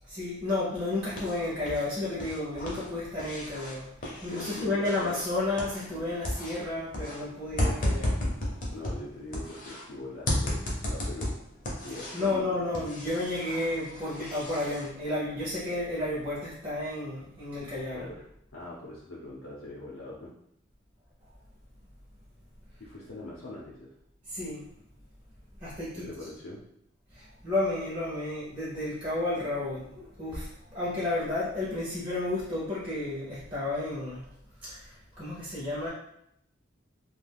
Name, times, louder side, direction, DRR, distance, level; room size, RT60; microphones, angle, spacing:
voice 1, 0.1-8.2 12.1-18.1 24.3-24.7 25.6-26.3 27.1-34.3 34.6-35.9, left 2 dB, 25° right, -9 dB, 0.6 m, -32 dB
sound 1, 0.7-1.9 2.1-6.0 6.2-9.8 10.3-12.4 12.7-14.9, left 1 dB, 40° left, 0.6 m, -34 dB
voice 2, 4.3-5.2 8.7-10.6 10.9-11.3 11.8-12.6 17.9-18.2 18.5-20.3 22.8-23.9 26.0-26.6, left 2 dB, 90° left, -5 dB, 0.6 m, -42 dB
2.3 x 2.3 x 3.4 m, 0.75 s
head